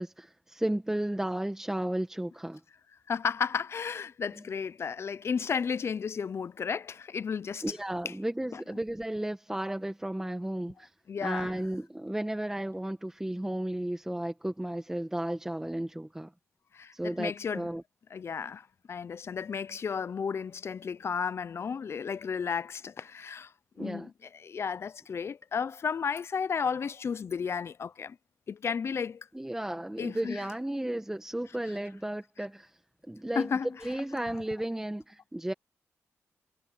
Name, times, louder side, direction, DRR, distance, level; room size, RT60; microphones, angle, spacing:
voice 1, 0.0-2.6 7.6-10.9 11.2-16.3 16.9-17.8 23.8-24.1 29.3-32.7 33.1-33.5 33.8-35.5, right 1 dB, 10° right, 1.5 m, -34 dB
voice 2, 3.1-7.6 8.0-8.1 8.5-8.6 11.1-11.5 16.7-17.7 18.1-23.5 23.8-28.2 28.5-29.3 30.0-30.5 33.3-33.9, left 6 dB, 55° left, 0.7 m, -33 dB
cardioid pair, 80°, 5 cm